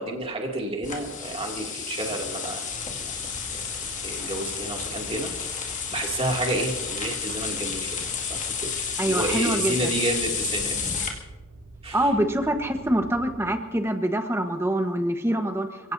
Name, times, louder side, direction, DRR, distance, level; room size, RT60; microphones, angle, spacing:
voice 1, 0.0-3.2 3.5-8.0 8.3-11.0 11.8-12.1, right 2 dB, 30° right, 0 dB, 2.5 m, -31 dB
sound 1, 0.8-11.1, left 6 dB, 35° left, 2.3 m, -31 dB
sound 2, 2.7-13.4, right 2 dB, 75° right, 5.9 m, -46 dB
voice 2, 9.0-9.9 11.9-15.9, right 1 dB, 10° right, 6 dB, 1.2 m, -25 dB
29.0 x 17.0 x 2.7 m, 1.2 s
head